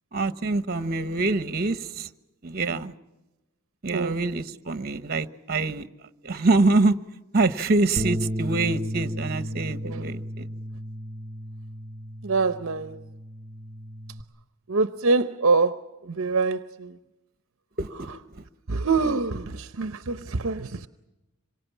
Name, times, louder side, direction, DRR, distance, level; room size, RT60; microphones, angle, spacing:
voice 1, 0.1-2.1 2.4-2.9 3.8-5.9 6.2-7.0 7.3-10.5 17.8-18.4, right 3 dB, 45° right, 1.2 m, -25 dB
Bass guitar, 8.0-14.2, equal, 25° right, 0.9 m, -34 dB
voice 2, 12.2-13.0 14.7-17.0 18.7-20.9, right 4 dB, 65° right, 0.8 m, -25 dB
26.5 x 24.0 x 7.3 m
head